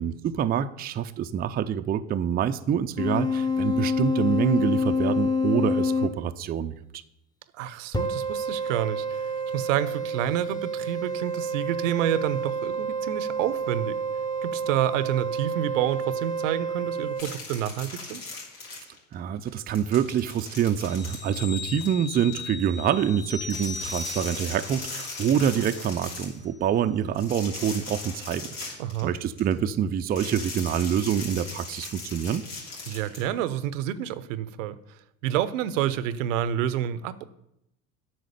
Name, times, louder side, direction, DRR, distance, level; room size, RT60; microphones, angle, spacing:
voice 1, 0.0-7.0 19.1-32.4, right 9 dB, 25° right, 9 dB, 0.4 m, -26 dB
sound 1, 3.0-6.1 7.9-17.2, equal, 10° left, 0.9 m, -28 dB
voice 2, 7.5-14.0 14.4-18.3 28.8-29.1 32.9-34.8 35.2-37.2, right 11 dB, 70° right, 16 dB, 0.7 m, -29 dB
sound 2, 17.2-19.1 19.5-22.4 23.4-26.4 27.1-29.5 30.1-33.2, left 3 dB, 80° left, 3.2 m, -39 dB
sound 3, 20.8-25.9 26.2-26.4, left 4 dB, 40° left, 1.4 m, -39 dB
8.6 x 6.3 x 6.5 m, 0.82 s
hypercardioid pair, 75°, 40 cm